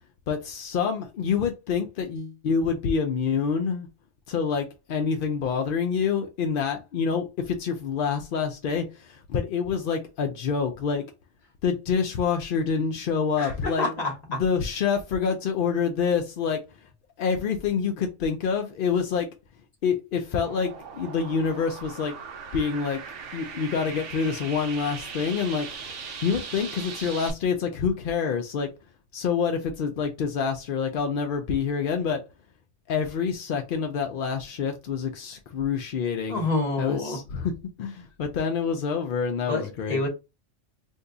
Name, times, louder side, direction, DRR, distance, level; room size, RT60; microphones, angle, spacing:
voice 1, 0.3-3.9 4.3-11.0 11.6-13.9 14.3-16.6 17.2-19.3 19.8-22.1 22.5-23.0 23.3-25.7 26.2-28.7 29.1-32.2 32.9-36.4 36.8-37.5 37.8-40.0, left 6 dB, 65° left, 0.5 m, -27 dB
voice 2, 13.4-14.4 36.3-37.2 39.5-40.1, left 2 dB, 35° left, 1.1 m, -28 dB
sound 1, 20.4-27.3, right 6 dB, 70° right, 1.0 m, -39 dB
2.7 x 2.2 x 3.7 m
omnidirectional pair, 1.4 m